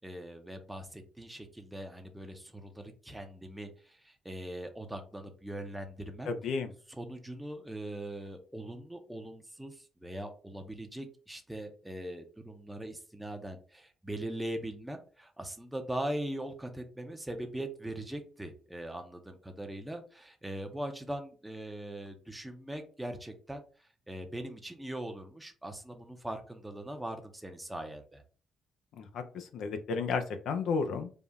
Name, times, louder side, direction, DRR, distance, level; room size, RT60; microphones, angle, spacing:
voice 1, 0.0-6.3 6.9-28.2, right 1 dB, 5° right, 4 dB, 0.7 m, -41 dB
voice 2, 6.3-6.7 28.9-31.1, left 5 dB, 75° left, 7 dB, 0.6 m, -33 dB
3.6 x 2.4 x 4.1 m, 0.39 s
cardioid pair, 90°, 0 cm